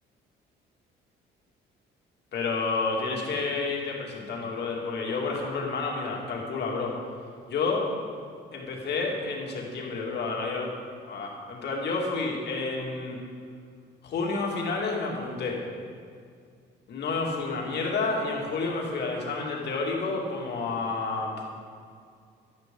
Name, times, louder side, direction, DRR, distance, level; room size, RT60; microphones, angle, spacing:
voice 1, 2.3-6.9 7.5-7.9 8.5-10.7 11.1-13.2 14.0-15.6 16.9-21.4, left 3 dB, 60° left, -1 dB, 2.2 m, -30 dB
11.0 x 10.5 x 3.8 m, 2.2 s
cardioid pair, 95°, 19 cm